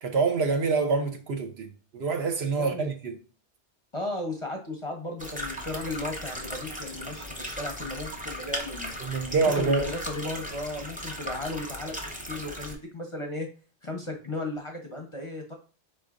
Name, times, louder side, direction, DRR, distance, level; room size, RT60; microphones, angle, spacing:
voice 1, 0.0-3.2 9.0-9.9, right 4 dB, 65° right, 0.9 m, -26 dB
voice 2, 2.5-2.9 3.9-9.0 9.4-12.0 12.3-13.5 13.8-15.5, left 2 dB, 35° left, 0.6 m, -35 dB
sound 1, 5.2-12.7, equal, 10° right, 0.6 m, -37 dB
4.6 x 4.3 x 2.4 m
omnidirectional pair, 1.2 m